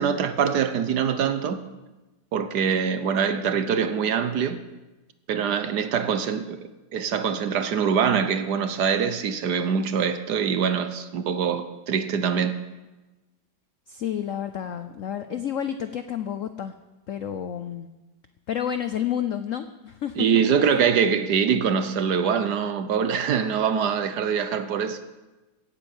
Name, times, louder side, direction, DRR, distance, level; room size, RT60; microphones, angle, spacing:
voice 1, 0.0-1.6 2.3-4.6 5.3-6.6 6.9-12.5 20.2-25.0, right 7 dB, 60° right, 1.3 m, -24 dB
voice 2, 13.9-16.7 17.1-17.9 18.5-20.7, left 9 dB, 90° left, 0.7 m, -30 dB
17.0 x 8.8 x 7.2 m
omnidirectional pair, 2.2 m